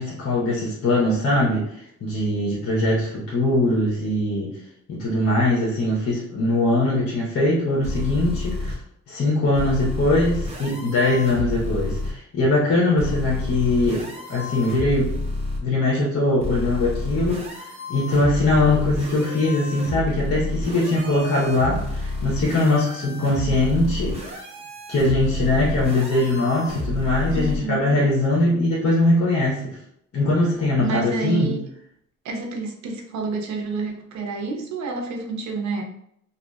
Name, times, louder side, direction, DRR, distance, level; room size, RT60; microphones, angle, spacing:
voice 1, 0.0-4.6 4.9-8.8 9.1-15.3 15.6-24.4 24.9-29.6 30.1-31.5, left 2 dB, 50° left, -6 dB, 0.9 m, -21 dB
sound 1, 7.8-8.7 9.5-12.1 13.0-15.6 16.4-27.6, left 1 dB, 20° right, 0.7 m, -30 dB
voice 2, 27.3-28.1 30.8-31.6 32.2-35.8, right 4 dB, 70° right, 2 dB, 0.7 m, -29 dB
2.6 x 2.4 x 2.3 m, 0.73 s
cardioid pair, 90°, 30 cm